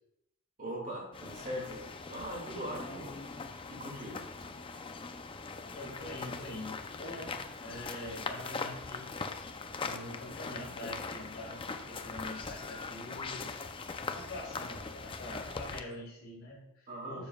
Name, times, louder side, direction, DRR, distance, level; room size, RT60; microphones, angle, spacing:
voice 1, 0.6-3.2 3.7-4.3 16.9-17.2, equal, 40° right, -2 dB, 2.1 m, -40 dB
sound 1, 1.1-15.8, left 4 dB, 25° left, 0.5 m, -41 dB
voice 2, 5.7-9.1 9.8-13.5 14.0-17.3, left 1 dB, 55° left, -9 dB, 3.2 m, -44 dB
12.0 x 7.1 x 2.3 m, 0.81 s
head